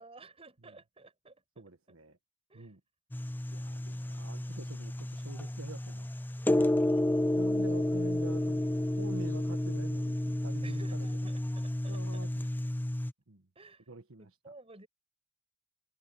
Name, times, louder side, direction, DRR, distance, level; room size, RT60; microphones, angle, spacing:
voice 1, 0.0-2.0 2.5-2.7 6.7-7.8 8.6-8.7 10.6-12.2 13.5-13.9 14.2-14.9, right 3 dB, 30° right, 6.1 m, -55 dB
voice 2, 1.6-2.2 2.5-2.8 3.5-6.1 6.6-6.7 7.3-11.1 11.9-12.5 13.3-13.5 13.9-14.3, right 2 dB, 70° right, 1.4 m, -46 dB
sound 1, 3.1-13.1, left 1 dB, 10° left, 0.4 m, -31 dB
head